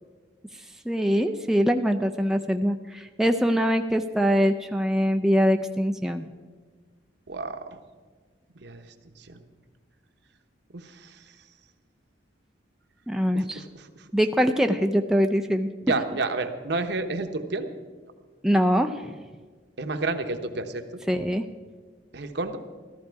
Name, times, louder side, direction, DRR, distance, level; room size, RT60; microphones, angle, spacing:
voice 1, 0.9-6.3 13.1-13.6 14.1-15.7 18.4-19.2 21.1-21.4, equal, 5° right, 5 dB, 0.4 m, -23 dB
voice 2, 7.3-7.7 8.6-8.8 9.2-9.4 10.7-11.2 13.3-14.0 15.8-17.7 19.8-20.8 22.1-22.6, right 3 dB, 65° right, 7 dB, 1.0 m, -30 dB
14.0 x 13.5 x 4.7 m, 1.5 s
head